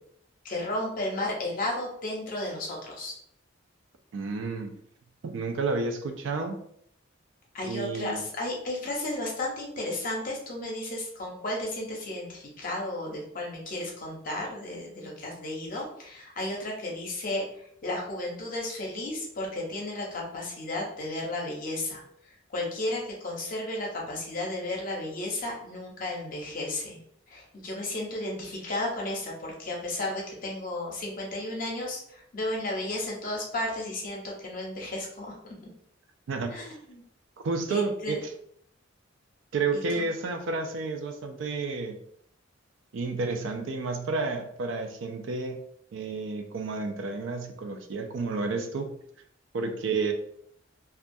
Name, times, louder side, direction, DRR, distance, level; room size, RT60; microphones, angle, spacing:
voice 1, 0.4-3.1 7.5-27.0 27.3-35.3 35.6-35.7 36.5-37.0 37.7-38.2 39.7-40.1, left 1 dB, 45° left, -1 dB, 0.6 m, -33 dB
voice 2, 4.1-4.7 5.2-6.6 7.6-8.2 36.3-36.7 37.4-38.2 39.5-42.0 42.9-45.6 45.9-49.0 49.5-50.1, right 3 dB, 70° right, 5 dB, 0.4 m, -31 dB
2.3 x 2.2 x 2.6 m, 0.69 s
head